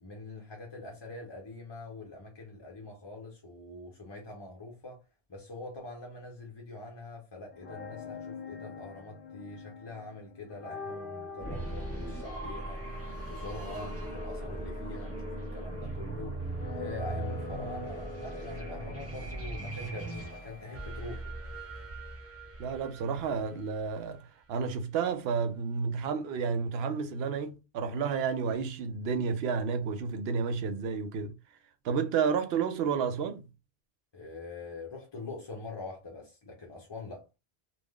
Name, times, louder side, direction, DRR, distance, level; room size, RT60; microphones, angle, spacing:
voice 1, 0.0-5.0 5.3-12.8 13.3-16.3 16.7-21.3 34.1-37.2, left 2 dB, 30° left, 0.6 m, -44 dB
sound 1, 7.5-20.4, left 4 dB, 60° left, 0.9 m, -45 dB
sound 2, 11.4-24.1, right 2 dB, 15° right, 1.1 m, -39 dB
voice 2, 22.6-24.2 24.5-31.3 31.8-33.4, right 6 dB, 70° right, 0.8 m, -31 dB
3.4 x 2.5 x 2.2 m
omnidirectional pair, 1.1 m